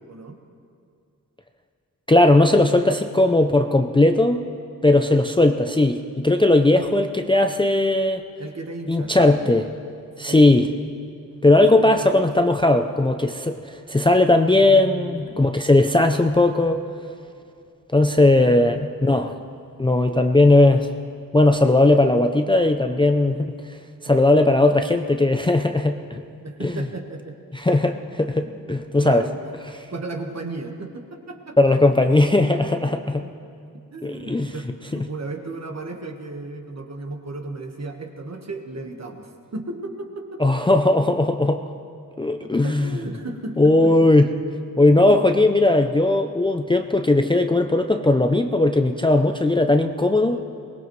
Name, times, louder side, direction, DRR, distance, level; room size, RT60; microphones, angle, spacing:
voice 1, 0.1-0.4 6.4-6.7 8.4-9.5 10.3-10.4 11.6-12.3 14.5-15.4 18.2-18.6 26.4-27.4 28.3-28.7 29.0-29.4 29.9-31.6 33.2-33.4 33.9-40.6 42.4-44.1 45.0-45.3 50.2-50.5, right 2 dB, 50° right, 4 dB, 1.4 m, -35 dB
voice 2, 2.1-4.4 4.8-8.2 8.9-9.7 10.2-10.7 11.4-16.8 17.9-19.4 19.8-20.9 21.3-23.6 24.0-26.2 26.6-26.9 27.6-29.3 31.6-33.3 34.0-34.5 40.4-41.6 42.2-42.9 43.6-44.3 44.8-50.4, left 2 dB, 15° left, 6 dB, 0.4 m, -18 dB
23.5 x 19.5 x 3.2 m, 2.4 s
wide cardioid pair, 130°, 35 cm